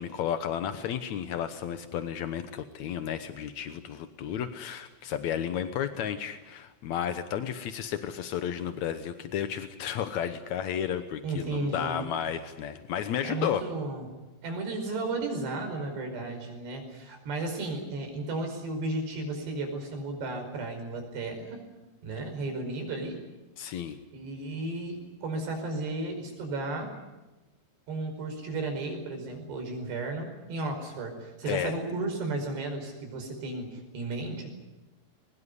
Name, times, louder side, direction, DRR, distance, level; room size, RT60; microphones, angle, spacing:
voice 1, 0.0-13.6 23.6-24.0 31.5-31.7, left 9 dB, 80° left, 9 dB, 1.6 m, -32 dB
voice 2, 11.2-12.1 13.2-14.1 14.4-21.6 22.0-23.2 24.1-26.9 27.9-34.5, right 2 dB, 75° right, 4 dB, 7.1 m, -34 dB
22.0 x 21.5 x 9.7 m, 1.1 s
omnidirectional pair, 4.8 m